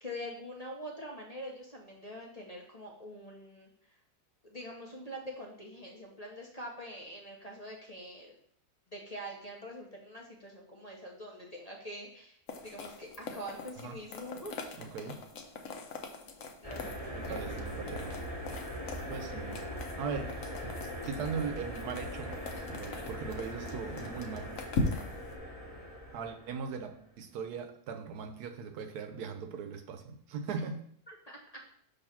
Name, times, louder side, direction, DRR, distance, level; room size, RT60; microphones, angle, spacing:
voice 1, 0.0-4.0 4.4-8.4 8.9-14.9 16.6-17.5 31.1-31.4, equal, 30° left, -1 dB, 0.8 m, -45 dB
sound 1, 12.5-25.4, left 3 dB, 65° left, 1.1 m, -41 dB
voice 2, 14.8-15.2 17.1-18.2 19.1-19.6 19.9-20.3 21.0-22.3 22.7-24.6 26.1-30.8, right 6 dB, 80° right, 7 dB, 1.2 m, -39 dB
sound 2, 16.6-26.9, equal, 15° left, 1.5 m, -41 dB
6.5 x 3.1 x 5.7 m, 0.62 s
omnidirectional pair, 1.7 m